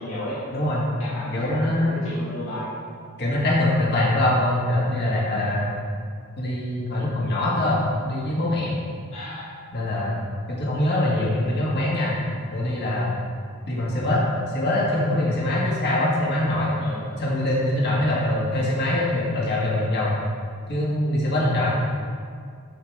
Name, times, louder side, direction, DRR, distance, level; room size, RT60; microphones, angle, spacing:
voice 1, 0.0-0.4 1.0-2.7 9.1-9.5 16.8-17.2, left 1 dB, 70° left, -10 dB, 1.7 m, -34 dB
voice 2, 0.5-0.8 1.3-2.0 3.2-5.7 6.4-8.7 9.7-10.2 10.5-12.2 12.5-13.2 13.7-14.2 14.5-16.7 17.2-20.1 20.7-21.8, left 1 dB, 50° left, -5 dB, 1.6 m, -23 dB
12.5 x 4.7 x 3.4 m, 2.2 s
head